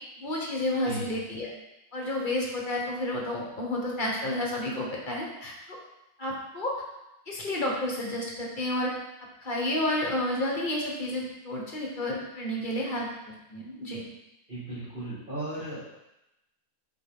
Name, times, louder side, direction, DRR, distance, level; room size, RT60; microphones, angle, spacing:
voice 1, 0.2-1.5 1.9-5.8 6.2-6.7 7.3-8.9 9.4-14.0, left 1 dB, 35° left, -2 dB, 1.3 m, -31 dB
voice 2, 14.5-16.0, right 1 dB, 35° right, -12 dB, 2.6 m, -36 dB
6.5 x 4.6 x 3.7 m, 0.90 s
omnidirectional pair, 1.6 m